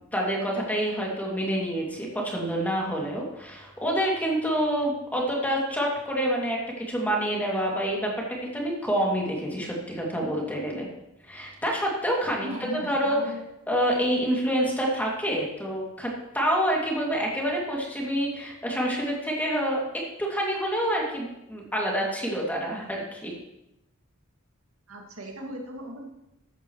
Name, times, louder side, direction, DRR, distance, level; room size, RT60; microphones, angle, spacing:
voice 1, 0.1-8.1 8.4-10.9 11.3-13.2 13.7-23.3, equal, 10° left, -2 dB, 2.6 m, -27 dB
voice 2, 12.4-13.4 24.9-26.0, equal, 85° right, 0 dB, 2.3 m, -37 dB
14.5 x 10.5 x 3.2 m, 0.88 s
head